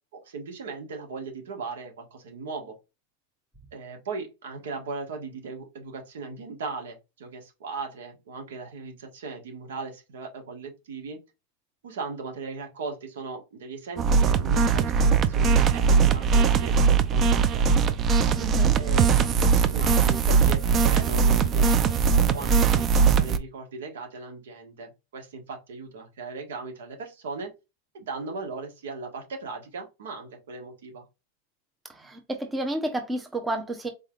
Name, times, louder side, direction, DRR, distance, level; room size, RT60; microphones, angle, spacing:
voice 1, 0.1-2.8 3.7-11.2 11.8-17.9 18.8-27.5 27.9-31.0, right 4 dB, 85° right, 1.5 m, -38 dB
sound 1, 14.0-23.4, right 6 dB, 30° right, 0.5 m, -20 dB
voice 2, 18.3-18.7 31.9-33.9, right 1 dB, 10° right, 0.8 m, -31 dB
4.2 x 3.6 x 2.4 m
supercardioid pair, 130°, 0 cm